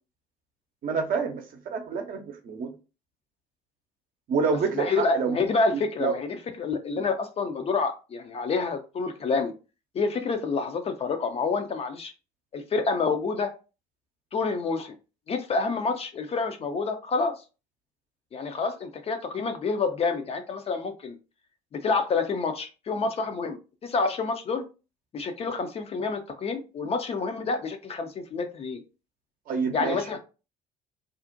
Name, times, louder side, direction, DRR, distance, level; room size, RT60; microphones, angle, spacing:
voice 1, 0.8-2.7 4.3-5.4 6.0-6.1 29.5-30.2, right 5 dB, 45° right, 0.6 m, -28 dB
voice 2, 4.7-9.5 9.9-12.1 12.5-13.5 14.3-14.9 15.3-17.4 18.3-21.2 21.7-23.6 23.8-24.6 25.1-28.8 29.7-30.2, left 4 dB, 30° left, 0.4 m, -28 dB
2.5 x 2.1 x 2.5 m
figure-of-eight pair, 55°, 20 cm